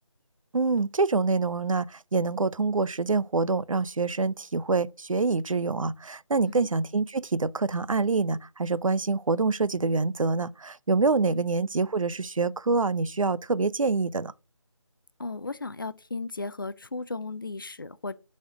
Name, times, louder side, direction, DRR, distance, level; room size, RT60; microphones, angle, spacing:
voice 1, 0.5-14.3, right 4 dB, 80° right, 0.6 m, -26 dB
voice 2, 15.2-18.1, left 3 dB, 40° left, 0.5 m, -35 dB
7.0 x 4.3 x 5.9 m
figure-of-eight pair, 165°, 17 cm